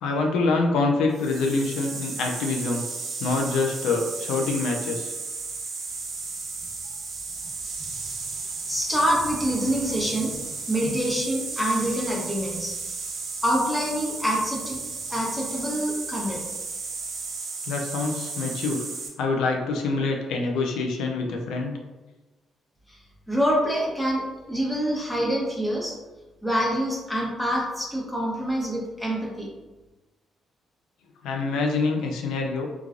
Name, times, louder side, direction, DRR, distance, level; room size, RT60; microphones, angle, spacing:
voice 1, 0.0-2.8 3.2-5.1 17.7-18.9 19.2-21.8 31.2-32.7, left 3 dB, 85° left, 2 dB, 0.3 m, -25 dB
sound 1, 1.1-19.1, right 4 dB, 60° right, 0.6 m, -34 dB
voice 2, 8.7-12.7 13.4-14.8 15.1-16.4 22.9-23.0 23.3-25.9 26.4-29.5, equal, 10° left, -4 dB, 0.9 m, -26 dB
3.1 x 2.3 x 2.4 m, 1.1 s
cardioid pair, 90°, 0 cm